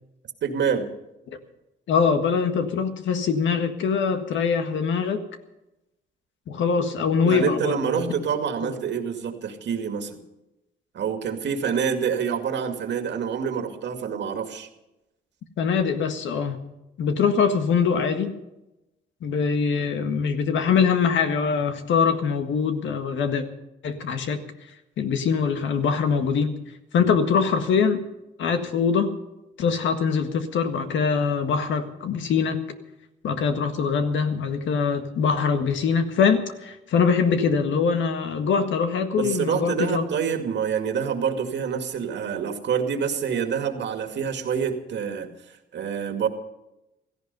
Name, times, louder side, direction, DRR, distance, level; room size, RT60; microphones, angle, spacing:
voice 1, 0.4-0.9 7.2-10.2 10.9-14.7 39.2-46.3, right 7 dB, 65° right, 6 dB, 2.2 m, -27 dB
voice 2, 1.9-5.2 6.5-8.0 8.7-8.8 15.6-16.6 17.0-18.3 19.2-23.4 23.8-24.4 25.0-26.6 26.9-28.0 28.4-29.1 29.6-32.6 33.2-40.1, left 6 dB, 70° left, 7 dB, 1.8 m, -23 dB
16.5 x 15.0 x 5.4 m, 0.93 s
cardioid pair, 90°, 20 cm